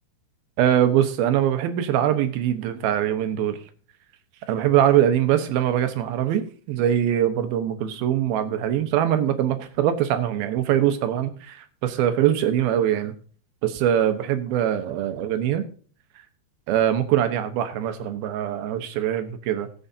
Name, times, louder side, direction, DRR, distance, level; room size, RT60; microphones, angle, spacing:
voice 1, 0.6-3.6 4.5-6.4 6.7-13.1 13.6-15.6 16.7-19.7, right 10 dB, 75° right, 8 dB, 2.8 m, -22 dB
20.0 x 7.1 x 2.8 m, 0.43 s
omnidirectional pair, 4.6 m